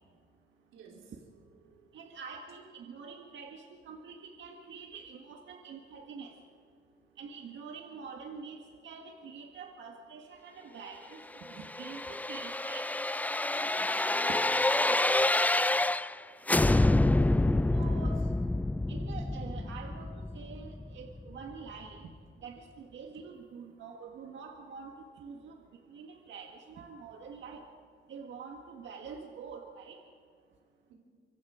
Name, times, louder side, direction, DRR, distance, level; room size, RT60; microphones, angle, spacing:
voice 1, 0.7-1.1 13.6-14.3 15.2-15.4 18.0-18.2 19.9-20.0 30.9-31.0, right 5 dB, 90° right, 0 dB, 4.4 m, -55 dB
voice 2, 1.9-6.3 7.2-12.9 14.5-15.4 17.7-18.2 18.9-22.1 22.4-25.6 25.9-27.6 28.1-30.0, right 5 dB, 70° right, 3 dB, 1.7 m, -46 dB
sound 1, 11.5-16.2 16.5-21.3 21.7-21.8, left 2 dB, 10° left, 0.4 m, -28 dB
25.0 x 24.0 x 5.0 m, 2.2 s
cardioid pair, 90°, 20 cm